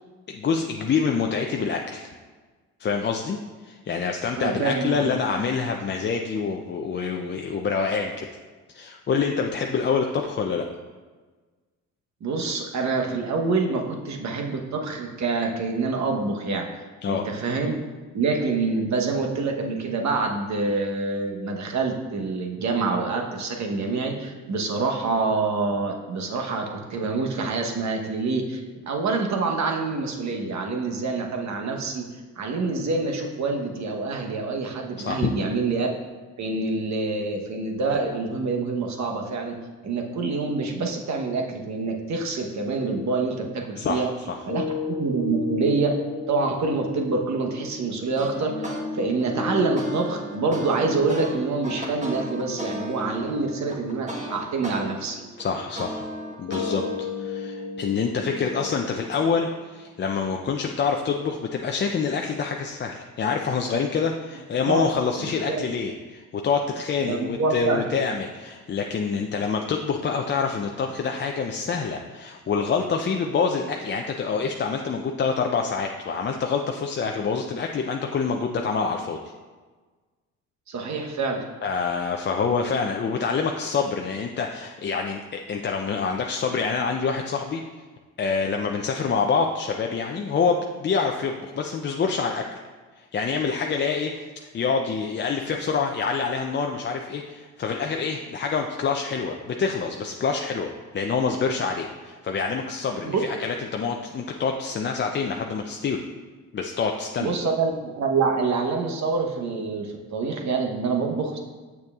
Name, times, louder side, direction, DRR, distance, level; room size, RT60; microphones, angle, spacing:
voice 1, 0.3-2.1 2.8-8.3 8.7-10.7 17.0-17.3 35.0-35.3 43.8-44.4 55.4-56.0 56.4-56.8 57.2-79.2 81.6-87.6 88.2-92.4 93.0-94.2 94.5-106.0 106.5-107.3, left 5 dB, 30° left, 3 dB, 0.5 m, -26 dB
voice 2, 4.4-5.3 12.2-16.7 17.0-17.8 18.1-28.6 28.9-32.0 32.4-35.9 36.4-39.6 39.8-44.1 44.5-45.9 46.3-55.2 64.7-64.8 65.2-65.6 67.0-67.9 80.7-81.4 103.0-103.2 107.2-111.4, right 4 dB, 50° right, 2 dB, 1.0 m, -26 dB
sound 1, 44.5-60.5, left 4 dB, 55° left, 1.0 m, -35 dB
sound 2, 48.2-48.8 49.2-54.8 55.2-57.0, right 1 dB, 20° right, 1.3 m, -35 dB
7.0 x 6.4 x 2.4 m, 1.3 s
supercardioid pair, 65°, 35 cm